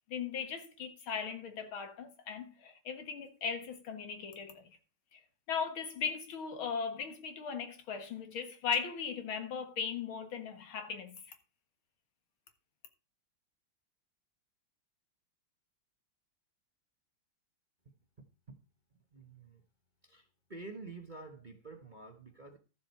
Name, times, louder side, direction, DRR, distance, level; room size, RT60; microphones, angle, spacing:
voice 1, 0.1-4.6 5.1-5.2 5.5-11.3, left 6 dB, 75° left, 2.4 m, -38 dB
voice 2, 19.1-19.6 20.0-22.6, right 3 dB, 30° right, 1.0 m, -49 dB
13.0 x 7.5 x 4.5 m
omnidirectional pair, 2.3 m